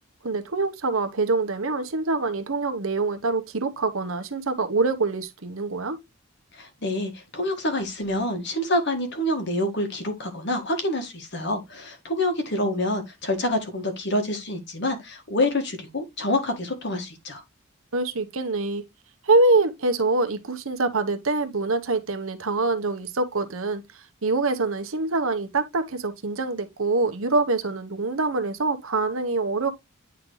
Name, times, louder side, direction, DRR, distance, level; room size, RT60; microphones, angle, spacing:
voice 1, 0.2-6.0 17.9-18.8 19.2-23.8 24.2-29.7, right 3 dB, 70° right, 0.9 m, -25 dB
voice 2, 6.5-17.4, left 1 dB, 50° left, 1.6 m, -27 dB
9.5 x 3.9 x 3.1 m
head